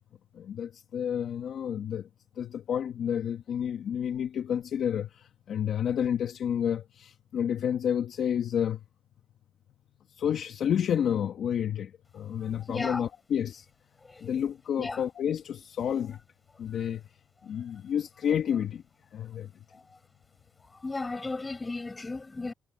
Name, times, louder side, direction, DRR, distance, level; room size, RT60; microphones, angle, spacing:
voice 1, 0.3-2.1 2.4-8.9 10.1-13.7 14.2-16.2 16.6-18.8 19.1-19.5, left 9 dB, 70° left, 1.9 m, -30 dB
voice 2, 12.7-13.1 14.0-14.3 14.8-15.0 19.7-20.0 20.6-22.5, left 3 dB, 25° left, 7.2 m, -35 dB
cardioid pair, 90°, 0 cm